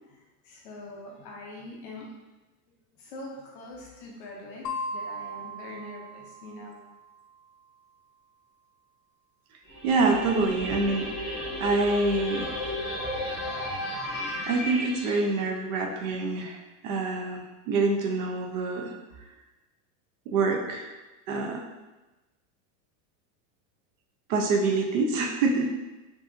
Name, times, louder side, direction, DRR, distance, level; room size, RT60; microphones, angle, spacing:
voice 1, 0.4-2.1 3.0-4.7 4.9-6.8, left 2 dB, 35° left, -2 dB, 0.5 m, -43 dB
sound 1, 4.6-7.1, left 1 dB, 80° left, 0.6 m, -37 dB
sound 2, 9.7-15.2, left 1 dB, ahead, 1.0 m, -33 dB
voice 2, 9.8-12.6 14.5-18.9 20.3-20.9 21.3-21.6 24.3-25.8, right 3 dB, 55° right, 2 dB, 0.7 m, -26 dB
5.3 x 2.7 x 2.5 m, 1.1 s
supercardioid pair, 175°, 47 cm